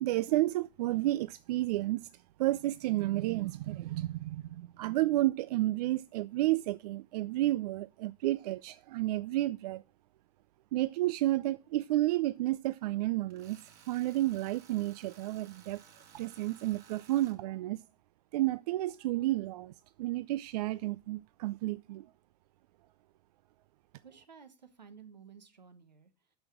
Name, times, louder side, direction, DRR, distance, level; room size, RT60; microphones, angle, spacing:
voice 1, 0.0-9.8 10.7-13.6 13.9-15.8 16.1-17.8 18.3-19.7 20.0-22.1, right 16 dB, 70° right, 0.4 m, -31 dB
Tools, 13.3-17.4, right 7 dB, 50° right, 2.4 m, -58 dB
voice 2, 24.0-26.4, right 6 dB, 90° right, 1.2 m, -54 dB
9.4 x 6.1 x 6.2 m
hypercardioid pair, 80°, 21 cm